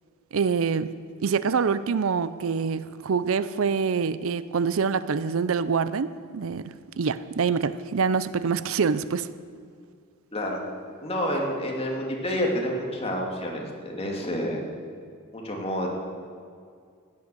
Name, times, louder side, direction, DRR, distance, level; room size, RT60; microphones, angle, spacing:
voice 1, 0.3-0.9 1.2-9.3, right 5 dB, 70° right, 15 dB, 0.5 m, -25 dB
voice 2, 10.3-10.6 11.0-14.6 15.3-15.9, equal, 30° left, 0 dB, 2.4 m, -29 dB
16.0 x 10.5 x 6.9 m, 2.2 s
head